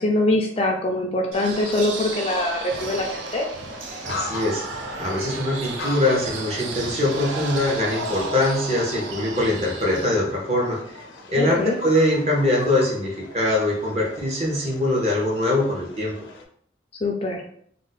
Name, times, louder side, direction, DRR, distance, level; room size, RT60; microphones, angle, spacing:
voice 1, 0.0-3.5 11.4-11.8 17.0-17.5, left 1 dB, 30° left, 2 dB, 0.3 m, -23 dB
sound 1, 1.3-10.1, right 2 dB, 90° right, 0.5 m, -33 dB
sound 2, 3.7-16.4, left 3 dB, 85° left, 0.5 m, -40 dB
voice 2, 4.0-4.6 5.0-10.8 11.3-16.1, left 1 dB, 35° right, -2 dB, 0.8 m, -22 dB
2.5 x 2.1 x 4.0 m, 0.64 s
head